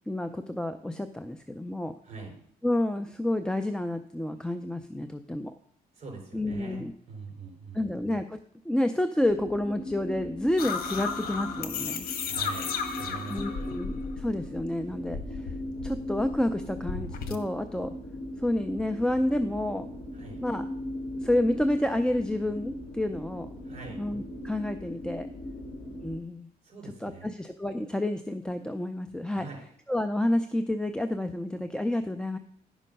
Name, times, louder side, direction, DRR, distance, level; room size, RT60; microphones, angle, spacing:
voice 1, 0.1-1.9 2.6-5.5 6.3-6.9 7.7-12.1 13.3-15.5 15.8-18.0 18.4-19.9 20.4-20.7 21.2-23.5 24.0-25.3 26.0-26.5 27.0-29.5 29.9-32.4, left 1 dB, 5° left, 7 dB, 0.5 m, -29 dB
voice 2, 2.0-2.3 5.9-7.9 12.3-13.7 20.1-20.4 23.6-24.0 26.6-27.3 29.3-29.7, right 4 dB, 45° right, 0 dB, 4.3 m, -43 dB
sound 1, 9.2-26.2, left 1 dB, 35° left, 2.6 m, -39 dB
sound 2, 10.6-14.6 14.9-17.4, left 5 dB, 70° left, 1.1 m, -34 dB
11.0 x 5.5 x 5.3 m, 0.64 s
cardioid pair, 105°, 16 cm